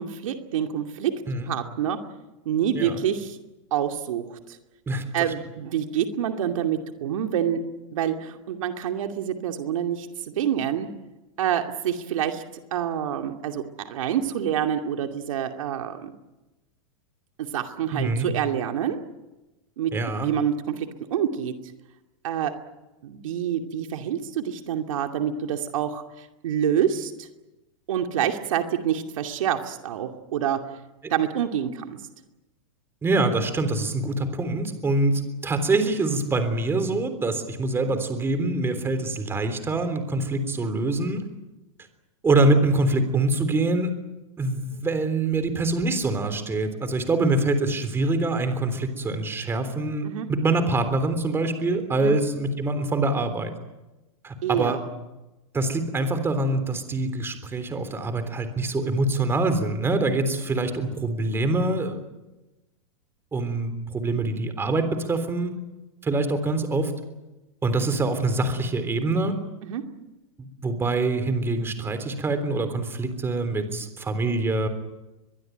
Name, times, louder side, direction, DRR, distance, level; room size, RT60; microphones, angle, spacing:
voice 1, 0.0-1.1 1.5-2.0 2.5-3.4 3.7-4.6 5.1-7.6 7.9-10.9 11.4-12.4 12.7-16.1 17.4-19.0 19.8-19.9 20.2-21.5 22.2-22.5 23.0-27.3 27.9-30.6 31.1-32.0 50.0-50.3 52.0-52.1 54.4-54.8 69.6-69.8, right 9 dB, 75° right, 5 dB, 2.6 m, -27 dB
voice 2, 17.9-18.3 19.9-20.3 31.0-31.1 33.0-41.2 42.2-43.9 44.4-53.5 54.2-54.8 55.5-62.0 63.3-65.6 66.0-66.9 67.6-69.4 70.4-74.7, right 2 dB, 15° right, 9 dB, 3.5 m, -25 dB
23.0 x 22.5 x 9.2 m, 1.1 s
hypercardioid pair, 140°, 17 cm